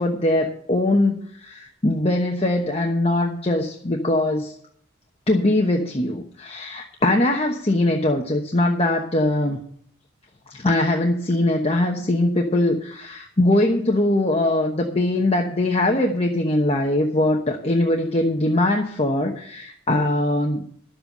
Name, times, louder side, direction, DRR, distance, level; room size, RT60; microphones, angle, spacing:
voice 1, 0.0-4.5 5.3-9.6 10.5-20.7, left 1 dB, 30° left, 1 dB, 1.1 m, -21 dB
11.5 x 7.8 x 6.6 m, 0.63 s
head